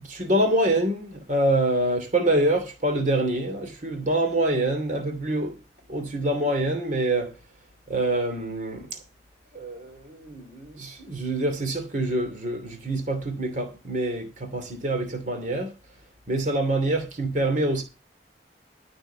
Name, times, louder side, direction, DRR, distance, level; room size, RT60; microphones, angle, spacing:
voice 1, 0.0-5.6 5.9-7.3 7.9-9.0 9.5-15.7 16.3-17.8, right 1 dB, 45° right, 2.7 m, -26 dB
13.0 x 6.2 x 6.8 m
head